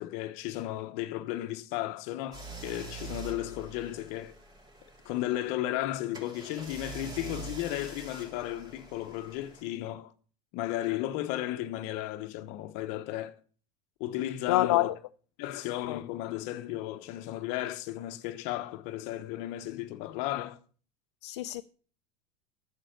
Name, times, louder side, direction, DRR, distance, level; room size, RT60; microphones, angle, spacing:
voice 1, 0.0-4.3 5.0-10.1 10.5-13.3 14.0-14.9 15.4-20.6, left 14 dB, 55° left, 1.0 m, -34 dB
sound 1, 2.3-5.5 6.1-9.6, right 3 dB, 30° right, 4.2 m, -45 dB
voice 2, 14.5-14.9 15.9-16.0 21.2-21.6, left 17 dB, 80° left, 0.6 m, -26 dB
10.0 x 7.6 x 6.7 m
supercardioid pair, 130°, 14 cm